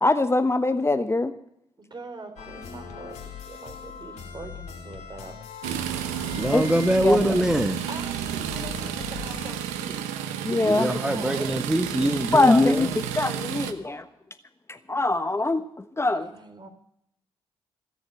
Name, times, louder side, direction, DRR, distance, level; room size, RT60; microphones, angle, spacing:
voice 1, 0.0-1.3 6.5-6.6 7.0-7.3 10.4-10.9 12.0-12.9 13.1-14.0 14.7-16.3, left 2 dB, 20° left, 9 dB, 1.2 m, -22 dB
voice 2, 1.8-3.2 3.5-6.5 7.9-11.7 16.2-16.7, right 3 dB, 40° right, 6 dB, 3.6 m, -43 dB
sound 1, 2.4-9.5, left 6 dB, 75° left, 2.9 m, -40 dB
sound 2, 5.6-13.7, right 10 dB, 85° right, 0.9 m, -31 dB
voice 3, 6.4-7.8 10.7-12.9, equal, 5° right, 8 dB, 1.2 m, -24 dB
17.0 x 7.1 x 9.9 m, 0.73 s
hypercardioid pair, 45°, 12 cm